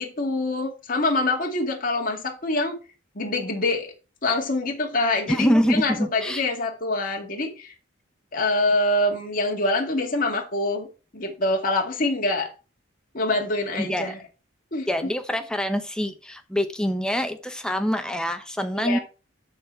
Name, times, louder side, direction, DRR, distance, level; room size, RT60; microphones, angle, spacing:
voice 1, 0.0-2.8 3.1-3.9 4.2-7.7 8.3-10.9 11.1-12.5 13.1-14.2 14.7-14.9 18.7-19.0, left 2 dB, 45° left, 2.2 m, -25 dB
voice 2, 5.3-6.4 13.7-14.2 14.9-19.0, equal, 5° left, 0.8 m, -25 dB
12.5 x 4.2 x 4.5 m
head